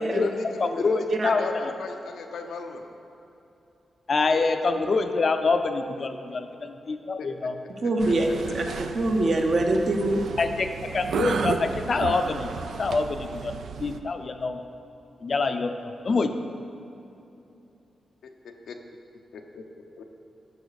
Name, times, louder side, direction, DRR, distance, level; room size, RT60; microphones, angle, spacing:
voice 1, 0.0-0.4 0.7-2.9 7.2-7.3 8.1-8.2 8.5-8.8 18.2-18.8 19.3-19.6 20.0-20.1, left 4 dB, 85° left, 4 dB, 0.7 m, -38 dB
voice 2, 0.6-1.4 4.1-7.6 10.4-10.7 10.9-12.5 12.8-13.5 13.8-14.6 15.2-16.3, left 4 dB, 50° left, 7 dB, 0.5 m, -25 dB
voice 3, 7.8-10.2, right 2 dB, 55° right, 3 dB, 0.9 m, -24 dB
sound 1, 8.0-14.0, right 6 dB, 80° right, 0.4 m, -33 dB
10.5 x 5.7 x 4.1 m, 2.8 s
cardioid pair, 85°, 0 cm